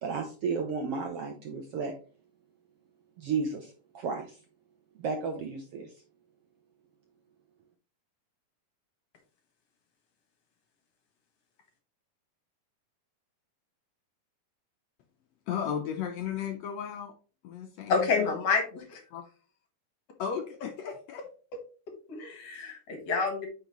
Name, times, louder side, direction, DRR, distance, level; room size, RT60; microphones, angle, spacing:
voice 1, 0.0-1.9 3.2-4.4 4.9-5.9, right 5 dB, 70° right, 4 dB, 1.5 m, -33 dB
voice 2, 15.5-17.2 17.4-18.4 19.1-19.2 20.2-21.3, left 8 dB, 70° left, 4 dB, 1.7 m, -35 dB
voice 3, 17.9-19.0 22.1-23.5, left 4 dB, 55° left, 4 dB, 2.4 m, -28 dB
9.1 x 5.5 x 3.0 m, 0.37 s
omnidirectional pair, 3.7 m